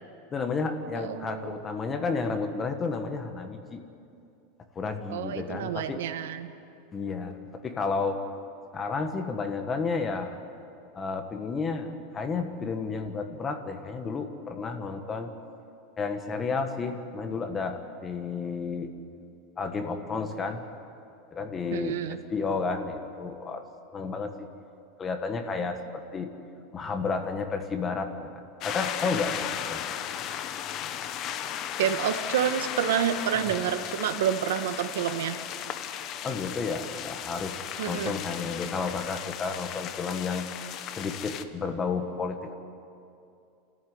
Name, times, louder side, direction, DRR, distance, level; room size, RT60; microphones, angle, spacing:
voice 1, 0.3-3.8 4.7-6.0 6.9-8.2 8.7-10.4 10.9-15.3 16.0-18.9 19.6-20.6 21.3-22.0 22.3-23.6 23.9-24.5 25.0-26.3 26.7-29.8 36.2-37.6 37.9-40.5 41.0-42.5, left 4 dB, 15° left, 6 dB, 1.4 m, -31 dB
voice 2, 0.9-1.6 5.1-6.5 21.7-22.2 31.8-35.4 37.8-38.1, right 9 dB, 85° right, 9 dB, 1.4 m, -29 dB
sound 1, 28.6-41.4, left 10 dB, 30° left, 0.9 m, -35 dB
28.5 x 14.5 x 9.6 m, 2.6 s
supercardioid pair, 170°, 0 cm